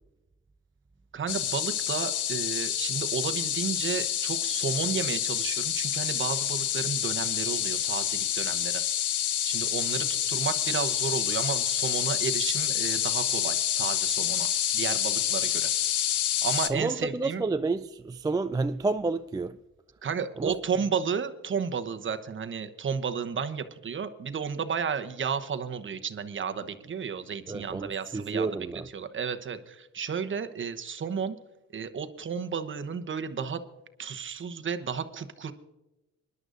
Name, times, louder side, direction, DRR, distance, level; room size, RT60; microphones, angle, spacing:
voice 1, 1.1-8.8 9.4-15.7 16.4-17.4 20.0-31.4 31.7-33.6 34.0-35.5, right 6 dB, 40° right, 1.0 m, -32 dB
sound 1, 1.3-16.7, left 11 dB, 85° left, 0.8 m, -28 dB
voice 2, 16.7-19.6 20.4-20.5 27.5-28.9, right 3 dB, 15° right, 0.3 m, -30 dB
24.5 x 11.0 x 2.6 m
cardioid pair, 90°, 30 cm